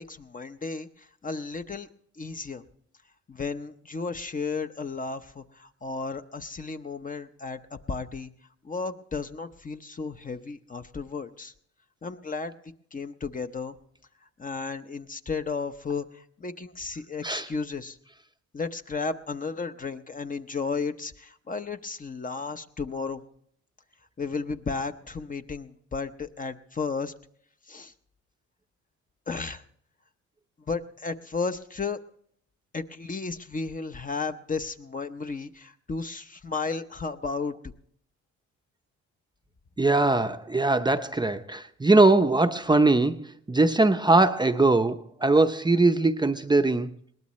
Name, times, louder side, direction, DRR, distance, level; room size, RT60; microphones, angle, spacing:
voice 1, 0.0-1.9 2.2-2.6 3.3-8.3 8.6-11.5 12.0-12.5 12.9-13.8 14.4-18.0 18.5-23.2 24.2-27.1 27.7-27.9 29.3-29.6 30.7-32.0 32.7-37.5, left 4 dB, 25° left, 8 dB, 0.8 m, -33 dB
voice 2, 39.8-46.9, right 2 dB, 15° right, 7 dB, 0.7 m, -21 dB
21.0 x 18.5 x 3.1 m, 0.66 s
cardioid pair, 90°, 30 cm